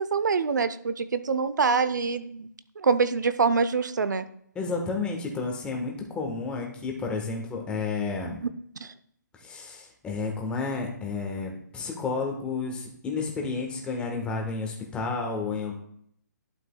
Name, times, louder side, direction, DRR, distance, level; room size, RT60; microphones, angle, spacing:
voice 1, 0.0-2.5 2.8-4.3 8.4-8.5 8.8-8.9, right 5 dB, 75° right, 12 dB, 0.6 m, -25 dB
voice 2, 4.5-8.4 9.4-15.7, left 4 dB, 10° left, 1 dB, 1.3 m, -31 dB
11.5 x 5.8 x 2.3 m, 0.66 s
hypercardioid pair, 145°, 10 cm